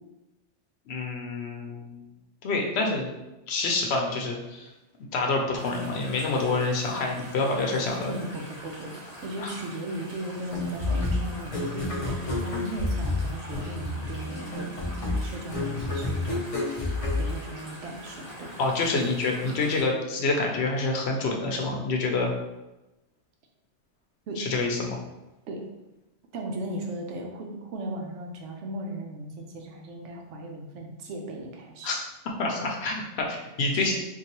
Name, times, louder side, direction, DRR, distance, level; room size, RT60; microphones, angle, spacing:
voice 1, 0.9-2.0 2.4-3.1 3.5-4.7 5.1-8.1 9.4-9.5 18.6-22.3 24.4-25.0 31.8-32.0 32.4-33.9, left 3 dB, 70° left, 1 dB, 0.9 m, -27 dB
sound 1, 5.5-19.8, equal, 35° right, 1.3 m, -45 dB
voice 2, 8.1-14.7 15.0-16.4 17.1-18.5 24.3-24.5 25.5-25.6 26.3-31.9 32.6-32.7 33.7-33.9, right 1 dB, 85° right, 1 dB, 1.0 m, -37 dB
sound 2, 10.5-18.1, left 2 dB, 45° left, 0.5 m, -30 dB
3.8 x 2.6 x 2.9 m, 0.99 s
omnidirectional pair, 1.2 m